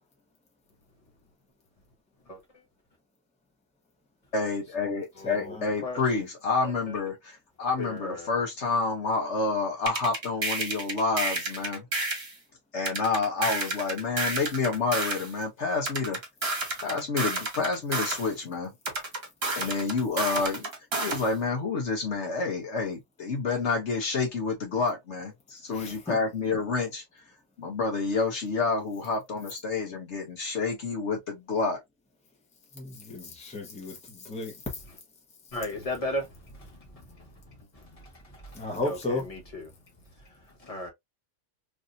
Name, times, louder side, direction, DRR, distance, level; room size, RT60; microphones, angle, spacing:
voice 1, 2.2-2.6 5.1-6.2 6.6-7.0 7.8-8.3 35.5-40.9, left 1 dB, 30° left, 1.1 m, -38 dB
voice 2, 4.3-7.1 7.6-11.9 12.7-16.2 16.8-18.7 19.6-20.7 21.0-27.0 27.6-31.8, left 4 dB, 60° left, 1.1 m, -29 dB
voice 3, 5.2-5.7 25.7-26.2 32.7-34.8 38.5-39.2, left 2 dB, 5° left, 1.0 m, -34 dB
sound 1, 9.9-12.3 12.9-15.3 15.9-18.3 18.8-21.3, right 2 dB, 50° right, 1.4 m, -30 dB
3.3 x 2.6 x 2.6 m
omnidirectional pair, 1.5 m